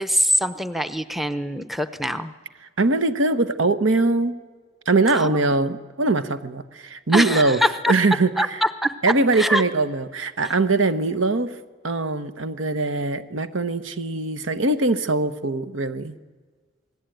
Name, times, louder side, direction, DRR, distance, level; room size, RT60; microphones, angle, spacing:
voice 1, 0.0-2.3 5.1-5.4 7.1-7.9 8.4-8.9 9.3-9.6 10.4-10.5, equal, ahead, 11 dB, 0.7 m, -23 dB
voice 2, 2.8-4.3 4.9-7.6 7.9-8.6 9.0-11.5 11.8-16.2, right 3 dB, 75° right, 10 dB, 1.1 m, -22 dB
28.0 x 19.5 x 9.2 m, 1.4 s
head